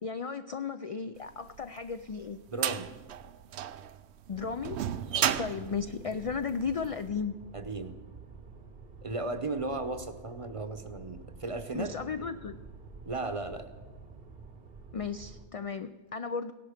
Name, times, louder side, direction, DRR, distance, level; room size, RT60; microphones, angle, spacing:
voice 1, 0.0-2.4 4.3-4.8 5.4-7.4 11.7-12.6 14.9-16.5, left 5 dB, 55° left, 10 dB, 0.4 m, -35 dB
sound 1, 1.5-6.9, right 10 dB, 85° right, 0.9 m, -33 dB
voice 2, 2.5-2.9 5.1-5.4 7.5-8.0 9.0-11.9 13.0-13.6, right 2 dB, 35° right, 9 dB, 0.9 m, -35 dB
sound 2, 4.3-15.4, right 4 dB, 60° right, 1.2 m, -49 dB
16.5 x 11.0 x 5.1 m, 1.3 s
omnidirectional pair, 1.1 m